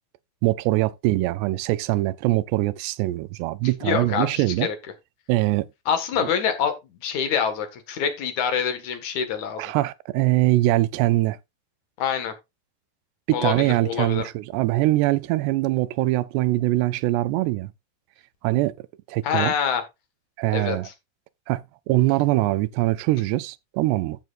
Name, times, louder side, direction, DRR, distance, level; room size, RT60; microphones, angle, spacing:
voice 1, 0.4-4.7 5.3-5.7 6.2-6.3 9.6-11.4 13.3-17.7 18.4-18.7 19.1-19.5 20.4-20.9 21.5-24.2, right 18 dB, 90° right, 2.7 m, -22 dB
voice 2, 3.8-4.7 5.9-6.7 7.0-9.7 12.0-12.3 13.3-14.3 19.2-19.8 20.5-20.9, left 7 dB, 55° left, 2.6 m, -25 dB
14.5 x 6.0 x 2.5 m
omnidirectional pair, 4.7 m